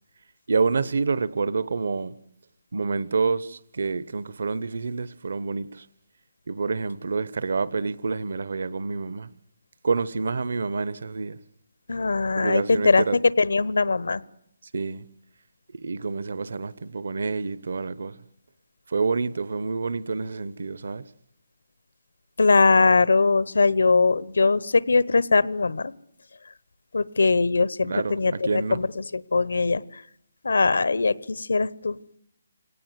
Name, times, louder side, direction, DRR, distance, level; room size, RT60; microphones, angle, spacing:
voice 1, 0.5-2.2 2.7-5.9 6.5-9.3 9.8-11.4 12.4-13.2 14.7-15.1 15.7-18.2 18.9-21.0 27.8-28.8, right 4 dB, 55° right, 0.9 m, -28 dB
voice 2, 11.9-13.0 13.4-14.2 22.4-25.9 26.9-30.0 30.4-32.0, left 4 dB, 80° left, 1.0 m, -21 dB
25.0 x 18.5 x 9.6 m
hypercardioid pair, 180°, 0 cm